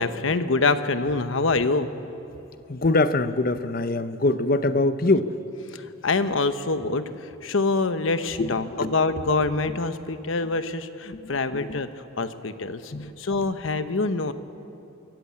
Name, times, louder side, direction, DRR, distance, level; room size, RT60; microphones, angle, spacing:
voice 1, 0.0-1.9 6.0-7.0 7.4-11.9 12.2-12.9 13.2-14.3, left 3 dB, 80° left, 10 dB, 1.0 m, -25 dB
voice 2, 2.7-5.3 8.4-8.9 9.7-9.8 11.1-11.8 12.9-13.1, left 2 dB, 45° left, 12 dB, 0.7 m, -24 dB
24.0 x 14.0 x 8.5 m, 2.7 s
head